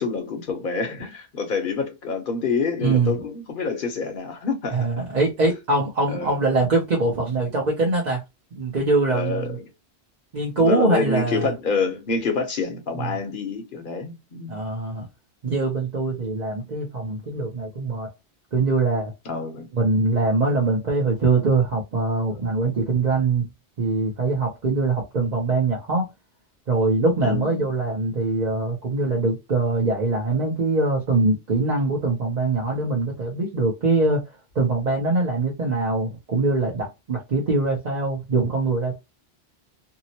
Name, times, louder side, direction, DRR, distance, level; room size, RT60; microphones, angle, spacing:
voice 1, 0.0-4.9 6.1-6.4 9.1-9.7 10.6-14.6 19.3-19.7 27.2-27.7, left 4 dB, 55° left, 0.9 m, -27 dB
voice 2, 2.8-3.1 4.7-8.2 8.5-9.6 10.3-11.5 13.0-13.2 14.5-15.1 15.4-18.1 18.5-19.1 19.7-23.5 23.8-26.1 26.7-34.2 34.5-39.0, right 3 dB, 45° right, 0.8 m, -23 dB
2.8 x 2.0 x 2.7 m
omnidirectional pair, 1.1 m